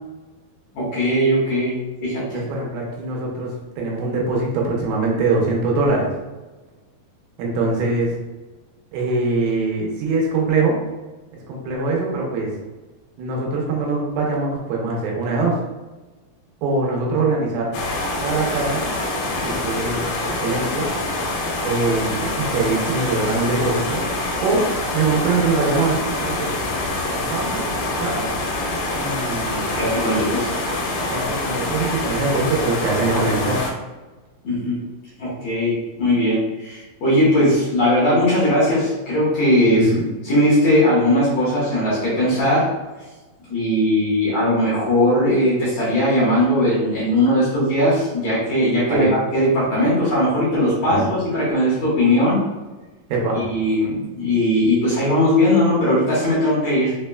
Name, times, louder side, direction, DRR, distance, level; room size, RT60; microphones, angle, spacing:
voice 1, 0.7-2.5 29.7-30.5 34.4-34.8 35.2-39.9 40.2-42.7 43.5-52.4 53.5-56.9, left 1 dB, 70° left, -9 dB, 1.6 m, -19 dB
voice 2, 2.3-6.2 7.4-8.2 8.9-10.8 11.5-12.5 13.2-15.6 16.6-17.7 18.2-18.9 19.3-20.0 20.4-20.9 21.6-24.0 24.4-24.6 24.9-26.7 27.1-27.6 28.0-28.3 28.9-29.7 31.1-33.6 39.7-40.1 48.9-49.1 50.8-51.1 53.1-53.4, right 3 dB, 90° right, -2 dB, 2.6 m, -23 dB
sound 1, 17.7-33.7, left 2 dB, 85° left, 2.5 m, -25 dB
6.0 x 2.1 x 2.2 m, 1.2 s
omnidirectional pair, 4.4 m